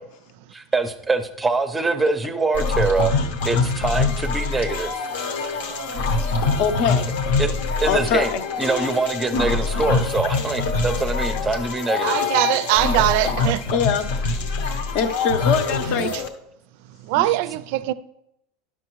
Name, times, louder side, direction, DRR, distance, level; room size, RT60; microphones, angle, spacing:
voice 1, 0.5-3.1 3.4-5.0 7.4-8.3 8.6-12.2 17.2-17.3, right 3 dB, 10° right, 0.5 m, -24 dB
sound 1, 2.5-16.3, left 4 dB, 80° left, 0.9 m, -24 dB
voice 2, 6.6-7.1 7.8-8.4 13.7-14.1 14.9-16.1, left 7 dB, 55° left, 0.6 m, -23 dB
voice 3, 12.0-13.6 15.7-16.2 17.1-17.9, right 16 dB, 60° right, 0.4 m, -22 dB
10.5 x 6.2 x 3.0 m
supercardioid pair, 160°, 0 cm